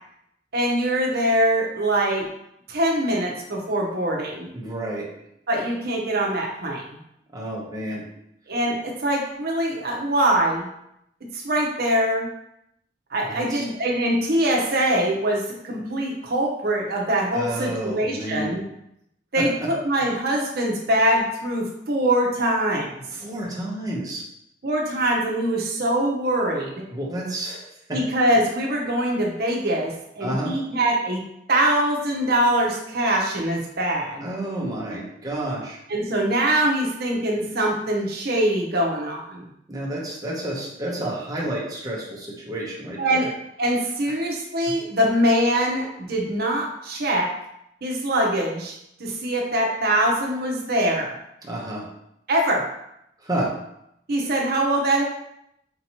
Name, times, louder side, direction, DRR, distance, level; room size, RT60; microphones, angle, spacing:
voice 1, 0.5-2.3 2.7-4.5 5.5-7.0 8.5-10.7 11.3-12.3 13.1-18.6 19.3-22.9 24.6-26.8 27.9-31.2 31.5-34.2 35.9-39.5 43.0-43.3 43.6-47.3 47.8-51.2 52.3-52.6 54.1-55.0, right 1 dB, 60° right, -1 dB, 0.8 m, -23 dB
voice 2, 4.5-5.1 7.3-8.0 13.2-13.6 17.3-18.6 19.4-19.7 23.1-24.2 26.9-28.0 30.2-30.6 34.2-35.8 39.7-43.3 44.7-44.8 51.4-51.9 53.2-53.5, right 1 dB, 20° right, -4 dB, 0.7 m, -30 dB
4.4 x 2.8 x 2.9 m, 0.78 s
head